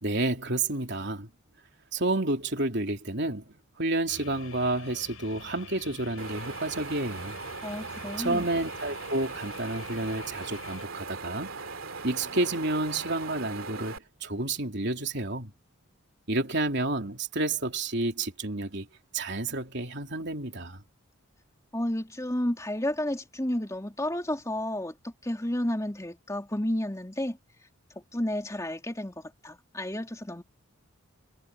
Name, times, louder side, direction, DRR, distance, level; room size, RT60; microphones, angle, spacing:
voice 1, 0.0-1.3 1.9-7.4 8.2-11.5 12.0-15.5 16.3-18.9 19.1-20.8, right 2 dB, 50° right, 3.5 m, -30 dB
sound 1, 4.1-10.9, left 5 dB, 80° left, 6.8 m, -48 dB
Wind, 6.2-14.0, right 4 dB, 65° right, 2.7 m, -39 dB
voice 2, 7.6-8.4 21.7-27.4 28.1-30.4, left 1 dB, 15° left, 3.0 m, -31 dB
head